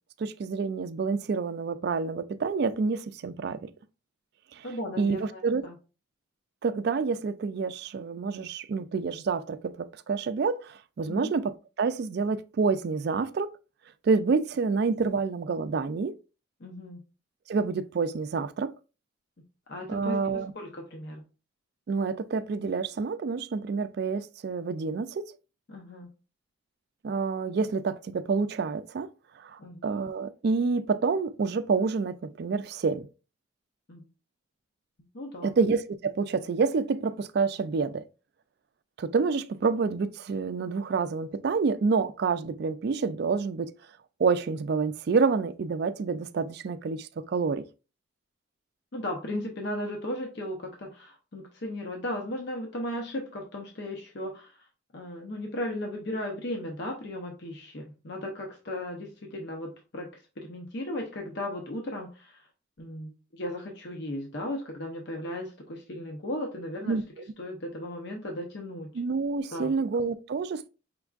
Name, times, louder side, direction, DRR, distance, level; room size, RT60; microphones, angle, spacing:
voice 1, 0.2-3.7 4.5-4.7 5.0-5.7 6.6-13.5 14.0-16.2 17.5-18.7 19.9-20.5 21.9-25.3 27.0-29.1 29.4-33.1 35.4-38.0 39.0-43.7 44.2-47.7 66.9-67.0 68.9-70.7, right 4 dB, 55° right, 0.3 m, -28 dB
voice 2, 4.6-5.7 11.1-11.3 16.6-17.0 19.7-20.2 20.5-21.2 25.7-26.1 29.6-29.9 33.9-34.1 35.1-35.5 48.9-54.5 54.9-60.1 60.4-62.4 62.8-67.0 67.4-68.9 69.5-69.7, left 1 dB, 60° left, 0.7 m, -36 dB
5.2 x 3.4 x 2.4 m
head